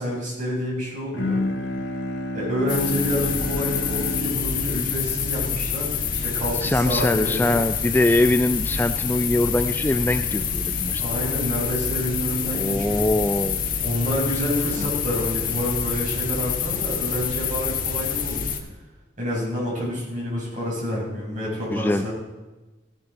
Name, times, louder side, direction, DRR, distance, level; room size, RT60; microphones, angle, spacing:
voice 1, 0.0-1.4 2.3-5.9 6.2-7.6 11.0-13.1 13.8-18.4 19.2-22.1, equal, 45° right, -4 dB, 5.3 m, -28 dB
Bowed string instrument, 1.1-6.6, left 2 dB, 85° left, 1.3 m, -31 dB
sound 1, 2.7-18.6, left 7 dB, 50° left, 1.4 m, -27 dB
voice 2, 6.5-11.0 12.5-13.6 14.8-14.9 21.7-22.1, left 1 dB, 10° left, 9 dB, 0.3 m, -22 dB
15.5 x 10.5 x 4.1 m, 1.1 s
head